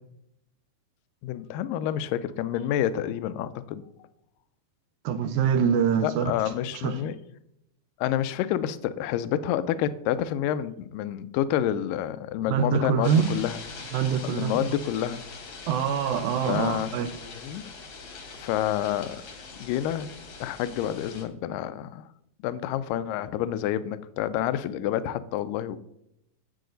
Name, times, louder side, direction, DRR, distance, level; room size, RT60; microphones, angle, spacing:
voice 1, 1.2-3.8 6.0-7.2 8.0-13.6 14.2-15.2 16.5-17.0 17.3-17.6 18.3-19.2 19.6-20.1 20.4-22.1 22.4-25.8, left 11 dB, 80° left, 14 dB, 2.1 m, -28 dB
voice 2, 5.0-6.3 6.8-7.1 12.5-13.3 13.9-14.8 15.7-17.1, right 7 dB, 80° right, 9 dB, 2.2 m, -25 dB
sound 1, 13.0-21.2, left 4 dB, 55° left, 1.5 m, -43 dB
11.5 x 7.7 x 3.9 m, 0.80 s
omnidirectional pair, 4.3 m